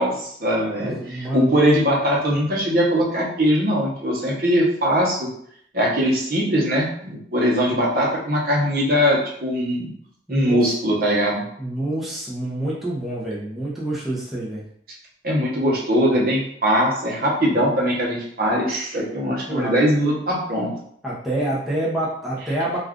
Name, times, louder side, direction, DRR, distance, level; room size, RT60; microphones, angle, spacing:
voice 1, 0.0-5.3 5.7-9.9 10.3-11.4 15.2-20.7, equal, 55° right, -3 dB, 0.8 m, -21 dB
voice 2, 0.8-1.6 10.3-10.7 11.6-14.6 19.2-19.7 21.0-22.8, right 1 dB, ahead, -7 dB, 0.6 m, -27 dB
2.4 x 2.3 x 3.5 m, 0.67 s
head